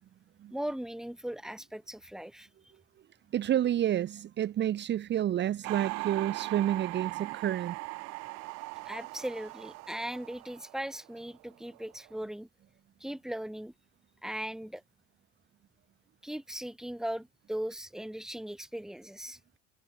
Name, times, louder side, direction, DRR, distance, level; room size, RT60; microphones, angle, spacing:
voice 1, 0.5-2.5 8.9-12.5 13.0-13.7 14.2-14.8 16.2-19.4, right 1 dB, ahead, 2.1 m, -38 dB
voice 2, 3.3-7.8, right 11 dB, 35° right, 1.3 m, -29 dB
sound 1, 5.6-11.5 11.7-12.2, right 29 dB, 55° right, 1.9 m, -40 dB
hypercardioid pair, 75°, 31 cm